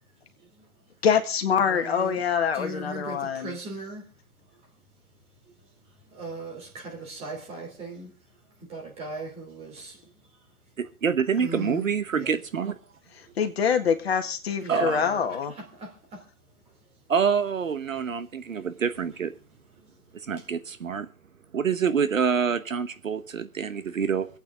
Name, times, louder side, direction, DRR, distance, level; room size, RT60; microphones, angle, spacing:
voice 1, 1.0-3.5 13.4-15.5, left 7 dB, 45° left, 1.8 m, -25 dB
voice 2, 1.7-2.2 2.5-4.0 6.1-8.1 8.6-10.1 11.3-11.9 12.1-12.4 13.2-13.3 14.6-16.2 18.5-18.6 19.8-19.9 20.4-20.5, right 2 dB, 15° right, 3.0 m, -39 dB
voice 3, 10.8-12.7 14.7-15.1 17.1-19.3 20.3-21.1 21.5-24.3, right 6 dB, 60° right, 1.2 m, -26 dB
26.5 x 8.8 x 3.6 m
figure-of-eight pair, 140°, 44 cm